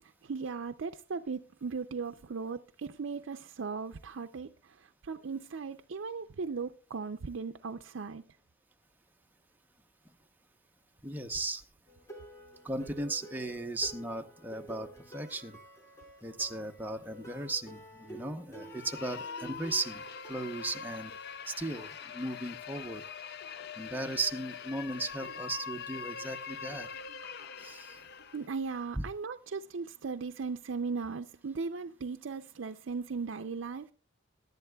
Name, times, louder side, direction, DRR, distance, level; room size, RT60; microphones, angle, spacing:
voice 1, 0.0-8.2 27.2-27.3 28.3-33.9, right 5 dB, 65° right, 0.5 m, -38 dB
voice 2, 11.0-11.6 12.6-15.6 16.2-21.1 21.5-23.0 23.8-26.9 27.6-28.0, right 2 dB, 10° right, 0.8 m, -36 dB
sound 1, 11.9-20.3, right 2 dB, 15° left, 2.7 m, -50 dB
sound 2, 18.6-28.5, left 6 dB, 55° left, 0.5 m, -43 dB
22.5 x 11.0 x 2.3 m
head